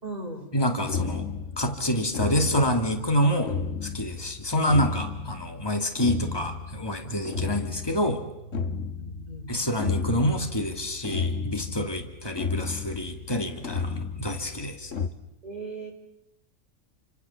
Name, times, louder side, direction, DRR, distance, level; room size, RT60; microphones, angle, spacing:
voice 1, 0.0-0.4 4.1-4.3 9.0-9.6 15.4-15.9, right 2 dB, 30° right, 1 dB, 4.8 m, -38 dB
voice 2, 0.5-1.3 1.6-3.6 3.8-8.2 9.5-14.9, equal, 20° left, 5 dB, 2.5 m, -27 dB
sound 1, 0.9-15.1, left 5 dB, 70° left, 1.7 m, -33 dB
29.0 x 26.0 x 7.2 m, 0.88 s
omnidirectional pair, 1.4 m